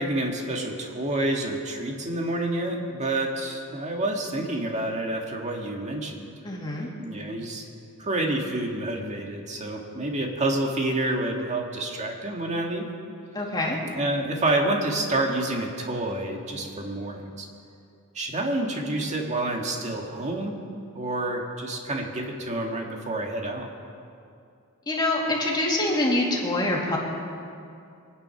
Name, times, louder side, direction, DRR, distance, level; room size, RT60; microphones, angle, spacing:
voice 1, 0.0-6.3 6.9-7.6 8.0-12.9 14.0-17.5 18.1-20.6 20.9-23.7, right 1 dB, 35° right, 1 dB, 1.9 m, -28 dB
voice 2, 6.4-6.9 13.3-13.8 24.9-27.0, left 1 dB, 20° left, -3 dB, 2.6 m, -25 dB
24.0 x 9.8 x 5.9 m, 2.5 s
head